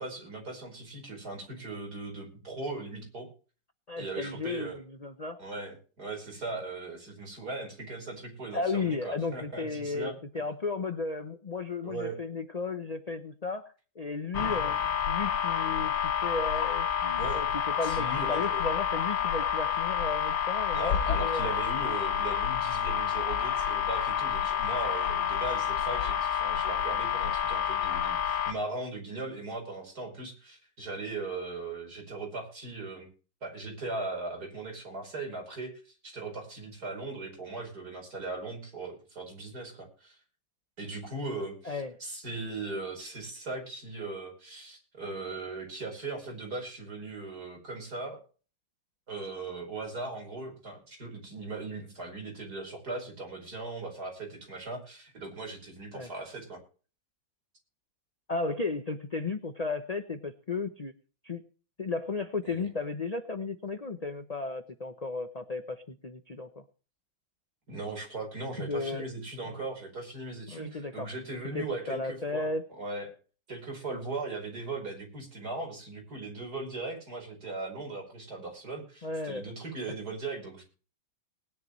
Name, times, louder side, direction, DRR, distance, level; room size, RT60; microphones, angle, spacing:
voice 1, 0.0-3.3 4.0-4.8 5.4-10.2 11.8-12.2 17.2-17.4 17.8-18.6 20.7-33.1 33.4-40.2 40.8-48.2 49.1-56.6 62.4-62.7 67.7-72.5 72.8-73.1 73.5-80.6, right 3 dB, 55° right, 2 dB, 5.5 m, -38 dB
voice 2, 3.9-5.4 8.5-14.8 15.1-21.5 41.6-41.9 55.9-56.1 58.3-60.9 61.2-61.4 61.8-66.6 68.6-69.1 69.5-69.6 70.5-71.1 71.4-72.7 79.0-79.4, left 3 dB, 40° left, 8 dB, 0.5 m, -34 dB
sound 1, 14.3-28.5, left 8 dB, 75° left, 2.1 m, -29 dB
19.5 x 10.5 x 3.2 m, 0.37 s
omnidirectional pair, 2.1 m